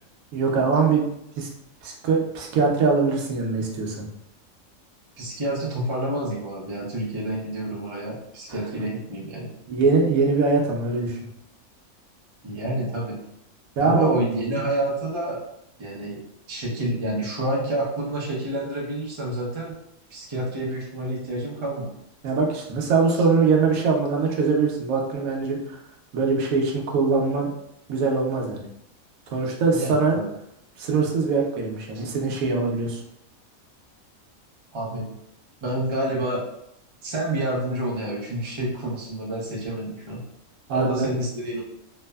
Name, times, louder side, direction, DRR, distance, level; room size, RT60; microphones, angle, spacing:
voice 1, 0.3-1.0 1.4-1.5 1.8-4.0 9.7-11.2 13.8-14.1 22.2-25.8 26.1-27.5 27.9-28.7 29.3-30.2 30.8-33.0 40.7-41.1, right 4 dB, 80° right, 0 dB, 1.0 m, -22 dB
voice 2, 5.2-9.5 12.4-13.1 13.8-15.4 15.8-16.2 16.5-19.7 20.1-21.9 23.1-23.2 29.7-30.2 31.9-32.0 34.7-35.1 35.6-36.4 37.0-40.2 40.7-41.6, right 1 dB, 35° right, -3 dB, 0.4 m, -28 dB
3.1 x 2.0 x 2.2 m, 0.77 s
omnidirectional pair, 1.4 m